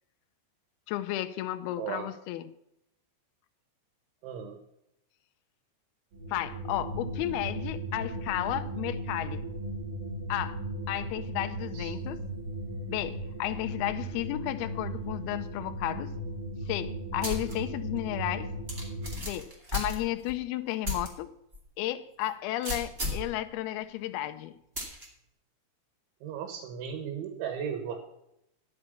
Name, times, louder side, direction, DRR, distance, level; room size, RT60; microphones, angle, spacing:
voice 1, 0.9-2.5 6.3-9.5 10.3-10.6 10.9-12.2 12.9-16.1 16.7-18.5 19.2-21.3 21.8-24.6, left 14 dB, 80° left, 8 dB, 2.3 m, -33 dB
voice 2, 1.8-2.1 4.2-4.6 11.7-11.9 26.2-28.0, right 8 dB, 80° right, 6 dB, 3.7 m, -36 dB
sound 1, 6.1-19.2, right 1 dB, 50° right, 4.8 m, -37 dB
sound 2, 17.2-17.5 18.0-18.1 18.7-20.4 20.8-21.1 21.5-21.6 22.6-23.3 24.8-25.1, left 1 dB, 20° right, 1.8 m, -34 dB
11.0 x 7.1 x 6.8 m, 0.80 s
omnidirectional pair, 5.3 m